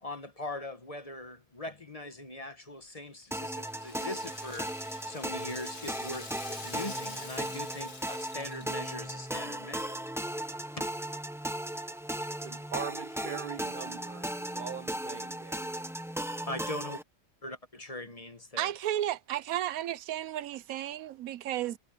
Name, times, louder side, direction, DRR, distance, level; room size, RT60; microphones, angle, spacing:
voice 1, 0.0-4.8 5.1-10.0 10.8-10.9 16.5-17.0 17.4-18.7, left 2 dB, 30° left, 1.2 m, -41 dB
Rattle (instrument), 2.8-9.0, left 3 dB, 50° left, 3.1 m, -47 dB
sound 1, 3.3-17.0, right 1 dB, ahead, 0.8 m, -37 dB
voice 2, 12.2-15.9, right 8 dB, 55° right, 0.6 m, -42 dB
voice 3, 18.6-21.8, right 12 dB, 90° right, 1.1 m, -33 dB
omnidirectional pair, 1.4 m